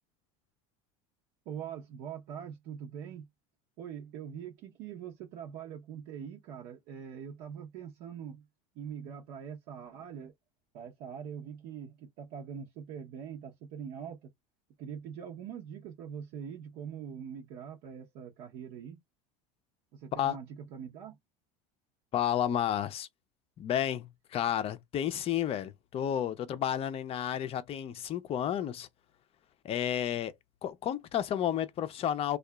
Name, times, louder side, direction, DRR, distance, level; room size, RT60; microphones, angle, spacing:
voice 1, 1.5-3.3 3.8-8.4 8.7-10.3 10.7-14.3 14.8-19.0 19.9-20.5 20.7-21.2, right 8 dB, 60° right, 0.8 m, -43 dB
voice 2, 22.1-23.1 23.6-28.9 29.6-30.3 30.6-32.4, left 10 dB, 35° left, 0.5 m, -31 dB
2.7 x 2.4 x 2.2 m
supercardioid pair, 120°, 18 cm